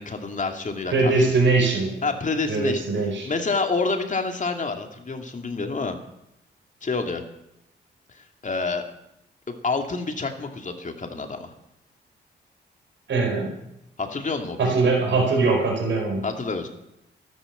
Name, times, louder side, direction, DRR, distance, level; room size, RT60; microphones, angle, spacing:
voice 1, 0.0-1.1 2.0-2.9 3.2-6.0 6.8-7.2 8.4-8.8 9.5-11.5 14.0-14.9 16.2-16.7, left 3 dB, 40° left, 5 dB, 2.6 m, -28 dB
voice 2, 0.9-1.9 2.5-3.3 13.1-13.5 14.6-16.2, right 3 dB, 70° right, -1 dB, 4.9 m, -21 dB
13.0 x 12.0 x 7.4 m, 0.84 s
cardioid pair, 65°, 20 cm